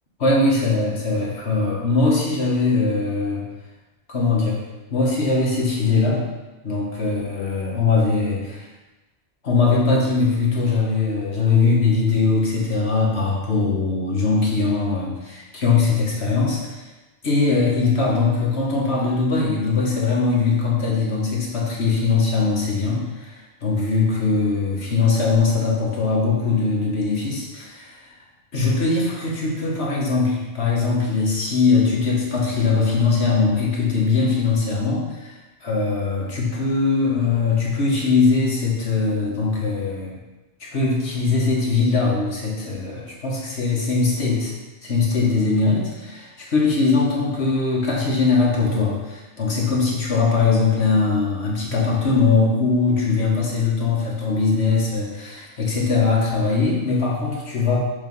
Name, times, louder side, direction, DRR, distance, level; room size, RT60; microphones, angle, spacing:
voice 1, 0.2-3.4 4.1-4.6 4.9-6.2 6.6-8.7 9.4-16.9 17.2-28.1 28.5-40.2 40.6-44.5 44.8-57.8, left 4 dB, 65° left, -3 dB, 1.7 m, -21 dB
7.1 x 3.3 x 5.5 m, 1.1 s
omnidirectional pair, 1.2 m